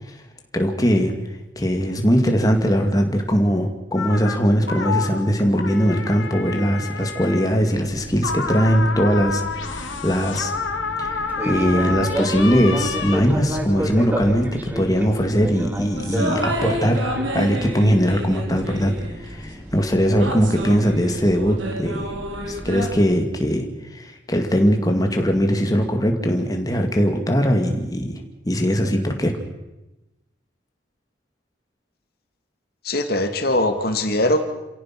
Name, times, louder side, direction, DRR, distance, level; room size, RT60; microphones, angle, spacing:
voice 1, 0.5-1.1 1.6-10.5 11.0-17.0 17.3-22.0 22.5-23.7 23.9-29.3, equal, 20° left, 3 dB, 2.3 m, -20 dB
sound 1, 4.0-4.4 4.7-7.5 8.2-13.2, left 4 dB, 90° left, 2.4 m, -29 dB
Fixed-wing aircraft airplane, 7.6-23.0, equal, 10° right, 2.3 m, -33 dB
sound 2, 16.0-19.3 20.2-22.9, right 1 dB, 85° right, 3.6 m, -29 dB
voice 2, 32.8-34.4, left 1 dB, 55° left, 7 dB, 2.4 m, -21 dB
28.0 x 17.0 x 6.1 m, 1.0 s
head